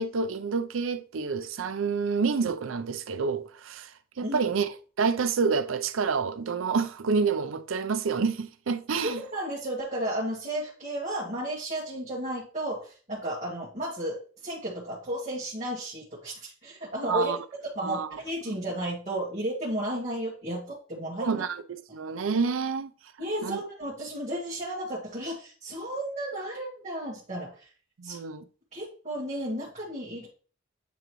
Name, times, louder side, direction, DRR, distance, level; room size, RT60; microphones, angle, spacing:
voice 1, 0.0-3.9 4.2-9.2 17.1-17.4 17.8-18.2 18.5-18.6 21.2-22.9 23.4-23.6 28.0-28.4, right 5 dB, 75° right, 0.5 m, -28 dB
voice 2, 9.0-17.3 17.7-21.4 23.2-27.5 28.0-28.2 28.7-30.3, right 1 dB, 35° right, 1.9 m, -33 dB
8.5 x 3.8 x 3.0 m
head